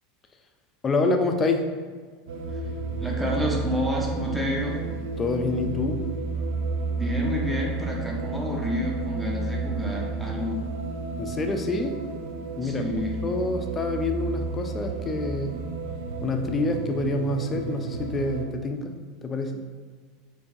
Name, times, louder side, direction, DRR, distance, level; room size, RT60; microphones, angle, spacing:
voice 1, 0.8-1.7 5.2-6.1 11.2-12.0 12.6-12.9 13.2-15.6 16.2-19.6, left 2 dB, 25° left, 5 dB, 0.4 m, -27 dB
sound 1, 2.3-18.4, right 3 dB, 65° right, 0.3 m, -32 dB
voice 2, 3.0-4.8 7.0-10.6 12.6-13.1, left 1 dB, 10° right, -2 dB, 0.8 m, -29 dB
4.4 x 2.7 x 2.5 m, 1.5 s
figure-of-eight pair, 80°, 0 cm